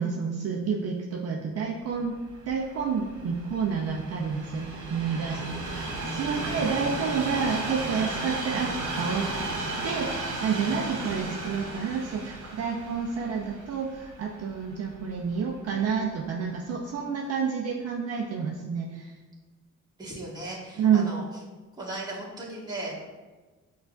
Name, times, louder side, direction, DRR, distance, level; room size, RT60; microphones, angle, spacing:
voice 1, 0.0-2.2 2.5-5.5 5.7-5.9 6.1-9.2 9.8-19.1 20.8-21.1, right 6 dB, 55° right, -1 dB, 0.5 m, -29 dB
Train, 2.2-15.4 16.0-16.2, right 2 dB, 75° right, 0.8 m, -34 dB
voice 2, 20.0-21.4 21.8-23.0, right 1 dB, 15° right, -6 dB, 1.3 m, -37 dB
6.4 x 2.3 x 2.3 m, 1.3 s
cardioid pair, 90°, 30 cm